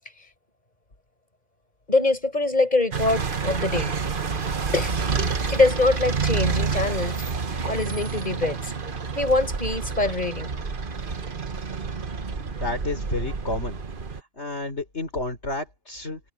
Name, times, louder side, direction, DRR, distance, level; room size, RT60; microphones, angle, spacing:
voice 1, 1.9-3.9 4.7-4.9 5.5-7.2 7.6-8.7 9.2-10.5, left 2 dB, 30° left, 5.8 m, -23 dB
sound 1, 2.9-14.2, right 5 dB, 40° right, 1.3 m, -28 dB
voice 2, 12.6-13.8 14.4-16.2, left 2 dB, 50° left, 4.5 m, -30 dB
omnidirectional pair, 1.5 m